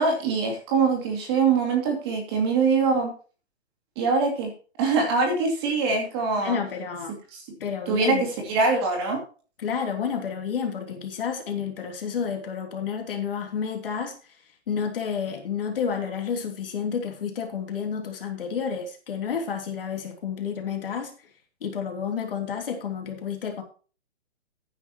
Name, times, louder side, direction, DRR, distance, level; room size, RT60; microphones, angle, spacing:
voice 1, 0.0-3.1 4.0-4.5 4.8-6.6 7.3-7.4 7.9-8.2 8.5-9.2, right 4 dB, 25° right, 2.5 m, -23 dB
voice 2, 6.4-7.1 7.6-8.2 9.6-14.2 14.7-21.1 21.6-23.6, left 7 dB, 55° left, 3.3 m, -30 dB
14.5 x 9.8 x 3.0 m
hypercardioid pair, 170°, 34 cm